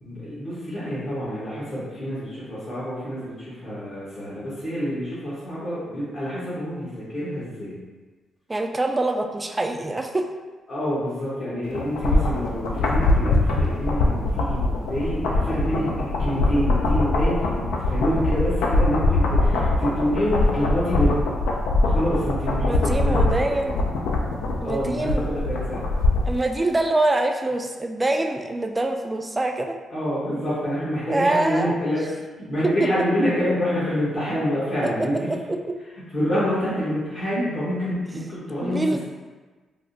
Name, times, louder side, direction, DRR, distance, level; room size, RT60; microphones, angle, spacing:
voice 1, 0.0-7.7 10.7-21.3 21.8-23.5 24.6-25.8 29.9-32.0 32.4-35.3 36.1-39.0, equal, 55° left, -10 dB, 1.1 m, -27 dB
voice 2, 8.5-10.3 22.6-23.8 24.6-25.3 26.2-29.8 31.1-31.7 34.8-35.4 38.6-39.0, right 2 dB, 25° right, 4 dB, 0.3 m, -24 dB
sound 1, 11.7-26.4 26.7-26.8, left 2 dB, 80° left, 0.3 m, -22 dB
3.4 x 2.0 x 2.6 m, 1.3 s
supercardioid pair, 55°, 0 cm